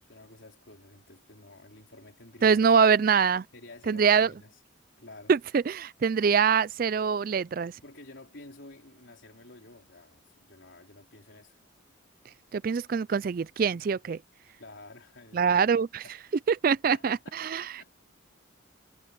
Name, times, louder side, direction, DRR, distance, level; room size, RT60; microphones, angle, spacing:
voice 1, 0.0-2.6 2.9-3.0 3.5-4.6 5.0-5.3 7.8-11.6 14.6-15.6 16.0-16.2 16.9-17.9, left 2 dB, 65° left, 3.9 m, -50 dB
voice 2, 2.4-3.4 3.9-4.3 5.3-7.7 12.5-14.2 15.3-16.0 16.5-17.9, right 6 dB, 45° right, 0.3 m, -24 dB
head